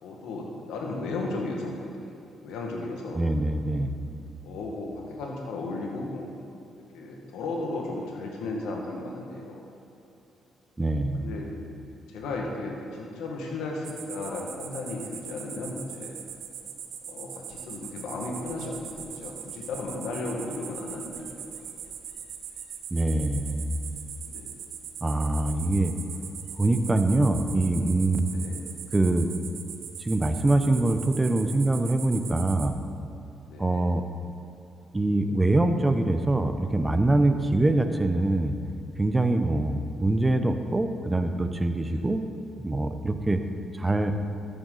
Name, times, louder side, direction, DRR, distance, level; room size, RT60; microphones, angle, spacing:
voice 1, 0.0-2.1 2.4-3.2 4.4-6.3 6.9-9.7 11.1-11.5 12.1-16.1 17.1-21.6 24.2-24.5 28.2-28.6 33.5-33.8 41.9-42.1, left 2 dB, 90° left, 0 dB, 1.8 m, -35 dB
voice 2, 3.1-3.9 10.8-11.3 22.9-23.7 25.0-25.9 26.6-28.3 28.9-29.3 30.0-32.8 33.6-34.0 34.9-38.6 39.0-42.3 42.6-43.4 43.8-44.1, right 2 dB, 15° right, 8 dB, 0.8 m, -24 dB
sound 1, 13.8-32.7, right 8 dB, 75° right, 0.8 m, -41 dB
13.0 x 8.8 x 4.1 m, 2.7 s
cardioid pair, 90°, 0 cm